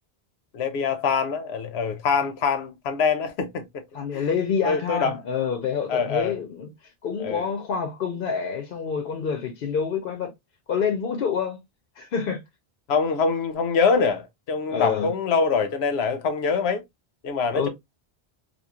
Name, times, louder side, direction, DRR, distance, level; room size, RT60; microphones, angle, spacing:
voice 1, 0.5-3.8 4.1-4.2 4.6-5.2 5.9-6.4 7.2-7.5 12.9-16.8 17.2-17.7, left 5 dB, 85° left, 0.9 m, -24 dB
voice 2, 3.9-6.7 7.0-10.3 10.7-11.6 12.0-12.4 14.7-15.1 17.5-17.7, left 6 dB, 65° left, 0.7 m, -27 dB
3.0 x 2.3 x 2.3 m
omnidirectional pair, 1.1 m